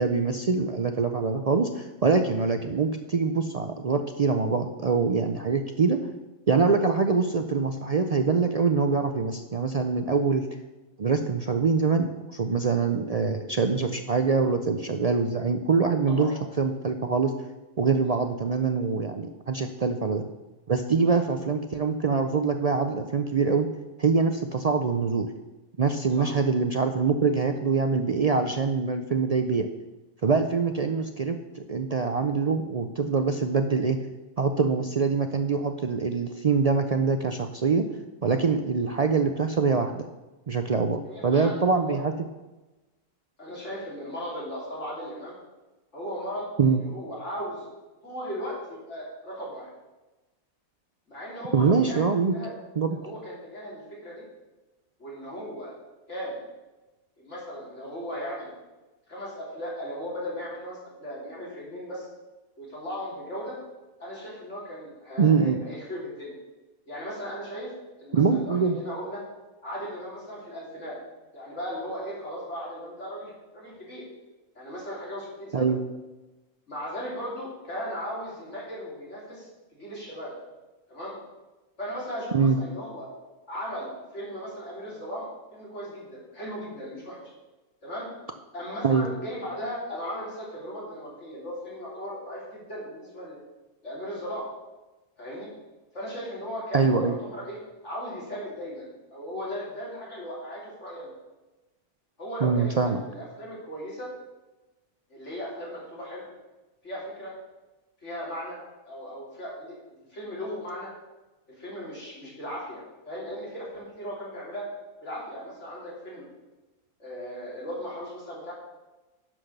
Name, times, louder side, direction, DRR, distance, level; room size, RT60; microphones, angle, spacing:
voice 1, 0.0-6.0 6.5-10.4 11.0-12.1 12.3-16.3 16.6-17.3 17.8-20.2 20.7-23.7 24.0-25.3 25.8-29.7 30.2-31.4 31.7-34.0 34.4-37.9 38.2-40.0 40.5-42.1 46.6-46.8 51.5-52.3 52.8-53.0 65.2-65.6 68.1-68.8 75.5-75.8 82.3-82.6 88.8-89.1 96.7-97.2 102.4-103.0, right 4 dB, 70° right, 6 dB, 0.3 m, -24 dB
voice 2, 41.1-42.0 43.4-45.4 45.9-47.7 48.0-49.7 51.1-52.5 52.9-54.2 55.0-55.7 56.1-56.4 57.2-58.5 59.1-62.1 62.6-63.6 64.0-66.3 66.9-67.7 68.0-69.2 69.6-71.0 71.3-74.1 74.6-75.7 76.7-80.3 80.9-81.1 81.8-83.1 83.5-87.2 87.8-88.1 88.5-93.4 93.8-94.5 95.2-95.5 95.9-101.1 102.2-102.7 103.0-104.1 105.1-106.3 106.8-107.3 108.0-108.6 108.9-110.9 111.6-114.7 115.0-116.2 117.0-118.5, equal, 55° left, -5 dB, 3.9 m, -37 dB
10.5 x 6.0 x 6.6 m, 1.1 s
omnidirectional pair, 1.5 m